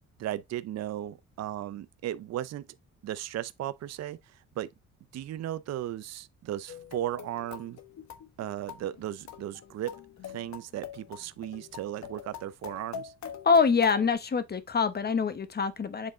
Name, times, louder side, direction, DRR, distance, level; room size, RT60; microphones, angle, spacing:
voice 1, 0.2-2.7 3.0-4.7 5.1-7.8 8.4-9.9 10.2-13.1, right 12 dB, 60° right, 0.6 m, -36 dB
sound 1, 6.7-14.1, left 8 dB, 65° left, 1.2 m, -45 dB
voice 2, 13.4-16.1, left 5 dB, 35° left, 1.1 m, -25 dB
7.7 x 3.6 x 3.7 m
cardioid pair, 90°, 30 cm